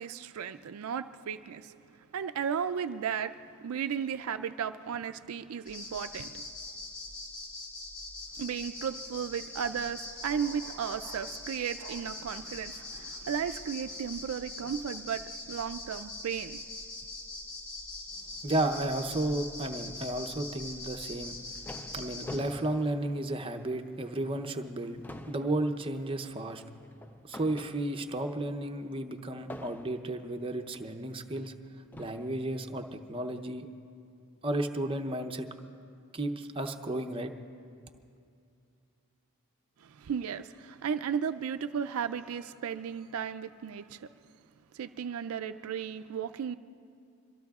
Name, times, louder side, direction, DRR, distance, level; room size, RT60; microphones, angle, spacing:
voice 1, 0.0-1.7 2.1-6.4 8.4-16.6 39.8-44.1 44.7-46.6, right 7 dB, 70° right, 10 dB, 0.4 m, -35 dB
sound 1, 5.7-22.4, left 2 dB, 65° left, 4.8 m, -42 dB
voice 2, 18.4-21.4 21.9-26.6 27.2-31.6 32.0-33.7 34.4-35.5 36.1-37.3, right 1 dB, 25° right, 5 dB, 0.7 m, -33 dB
sound 2, 21.1-23.8 24.2-24.4 24.7-28.2 29.5-30.2 31.1-31.2 31.9-32.4, left 1 dB, 10° left, 0.4 m, -46 dB
25.5 x 23.0 x 2.4 m, 2.5 s
head